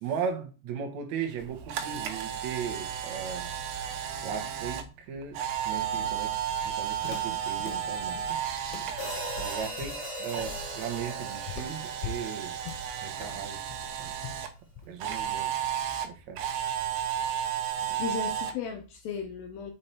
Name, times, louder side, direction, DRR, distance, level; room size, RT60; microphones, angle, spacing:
voice 1, 0.0-3.6 4.2-6.3 6.6-8.6 9.3-12.6 13.0-13.6 14.0-14.1 14.9-15.5 16.0-16.4 17.9-18.0, right 7 dB, 90° right, 1.5 m, -37 dB
Camera, 1.3-9.7 10.0-14.5 15.0-18.5, right 9 dB, 75° right, 2.4 m, -33 dB
Walk footsteps, 5.9-15.2, left 7 dB, 90° left, 2.8 m, -44 dB
sound 1, 9.0-13.3, equal, 30° left, 0.5 m, -40 dB
voice 2, 17.8-19.7, left 6 dB, 70° left, 2.4 m, -35 dB
5.6 x 5.3 x 4.4 m
omnidirectional pair, 4.9 m